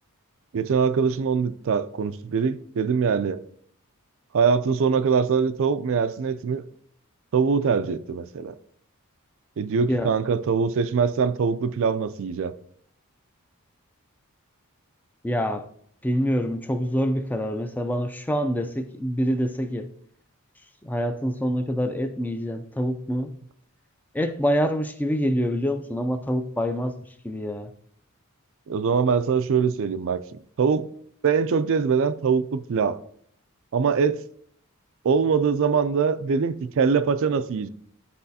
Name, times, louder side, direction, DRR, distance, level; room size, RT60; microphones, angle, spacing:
voice 1, 0.5-3.4 4.3-6.6 7.3-8.5 9.6-12.5 28.7-30.2 30.6-30.9 31.2-33.0 33.7-34.2 35.0-37.7, right 6 dB, 60° right, 0.4 m, -23 dB
voice 2, 15.2-15.7 16.0-19.9 20.8-23.4 24.1-27.0 27.2-27.7, equal, 10° left, 0.4 m, -26 dB
11.5 x 4.1 x 2.7 m
head